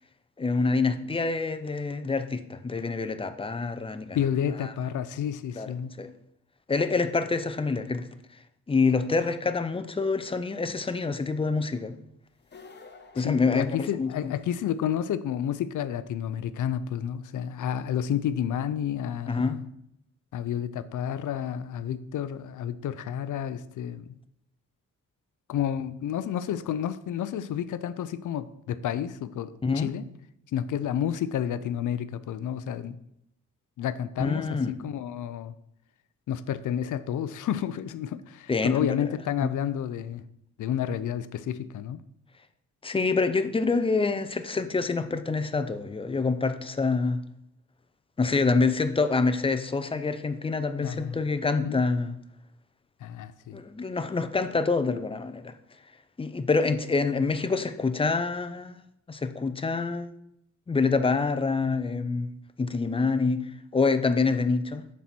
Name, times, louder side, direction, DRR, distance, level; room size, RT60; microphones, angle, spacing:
voice 1, 0.4-4.2 4.6-4.7 5.6-6.1 6.7-8.1 8.7-11.9 13.1-14.3 19.3-19.6 29.6-29.9 34.2-34.7 38.5-39.1 39.4-39.5 42.8-47.2 48.2-52.2 53.5-55.5 56.2-58.8 59.1-60.1 60.7-62.3 62.6-64.8, left 4 dB, 20° left, 0.5 m, -26 dB
voice 2, 4.1-5.9 13.2-19.6 20.3-24.2 25.5-30.0 30.5-33.0 33.8-35.5 36.3-40.2 40.6-42.0 50.8-51.2 51.6-51.8 53.0-53.6, left 9 dB, 75° left, 0.5 m, -30 dB
sound 1, 12.4-14.4, left 4 dB, 35° left, 0.9 m, -51 dB
7.4 x 4.3 x 6.0 m
wide cardioid pair, 135°, 31 cm